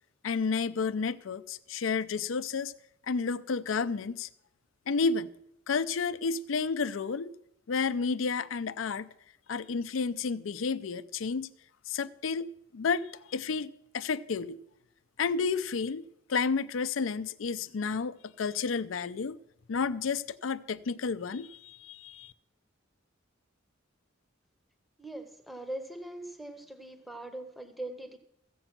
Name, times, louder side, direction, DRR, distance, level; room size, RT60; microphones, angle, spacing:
voice 1, 0.2-2.7 3.1-4.3 4.9-5.3 5.7-7.3 7.7-9.1 9.5-11.5 11.9-14.6 15.2-19.4 19.7-22.3, left 5 dB, 75° left, 0.5 m, -31 dB
voice 2, 25.0-28.2, right 1 dB, ahead, 0.8 m, -41 dB
15.0 x 7.9 x 5.9 m
head